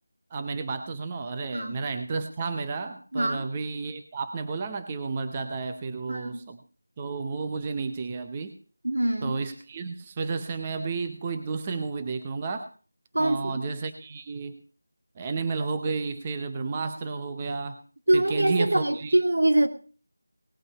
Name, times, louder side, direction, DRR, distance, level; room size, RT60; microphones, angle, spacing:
voice 1, 0.3-6.6 7.0-8.6 9.2-12.7 13.2-14.6 15.2-17.8 18.1-19.2, right 4 dB, 10° right, 7 dB, 0.6 m, -32 dB
voice 2, 3.1-3.4 6.1-6.4 8.8-9.4 13.1-13.6 18.1-19.7, right 1 dB, 80° right, 6 dB, 2.4 m, -24 dB
19.0 x 8.3 x 5.4 m, 0.39 s
figure-of-eight pair, 180°, 0 cm